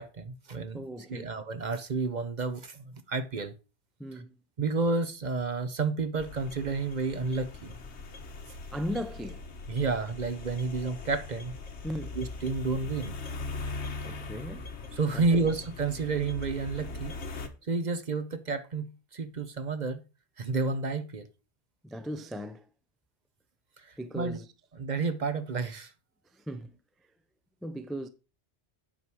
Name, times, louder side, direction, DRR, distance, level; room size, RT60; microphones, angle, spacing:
voice 1, 0.0-0.8 1.1-3.5 4.6-7.7 9.7-11.6 12.2-13.2 14.9-20.0 20.4-21.3 23.8-24.4 24.8-25.9, right 4 dB, 45° right, 0.9 m, -31 dB
voice 2, 0.7-1.4 4.0-4.3 8.7-9.5 11.8-12.2 14.1-14.7 15.1-15.5 21.8-22.7 24.0-24.5 26.3-26.8 27.6-28.1, equal, ahead, 0.4 m, -37 dB
sound 1, 6.2-17.5, left 3 dB, 75° left, 1.4 m, -40 dB
8.8 x 4.7 x 6.2 m
omnidirectional pair, 1.2 m